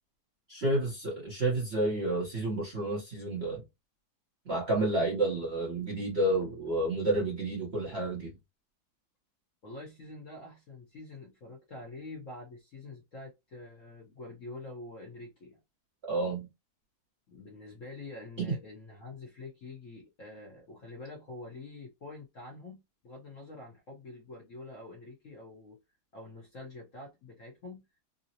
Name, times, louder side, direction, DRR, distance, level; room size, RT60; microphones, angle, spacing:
voice 1, 0.5-3.6 4.4-8.3 16.0-16.5 18.4-18.5, right 2 dB, 45° right, 0.9 m, -30 dB
voice 2, 9.6-15.6 17.3-25.8 26.1-27.8, left 2 dB, 55° left, 0.9 m, -46 dB
3.8 x 2.0 x 2.7 m
omnidirectional pair, 2.1 m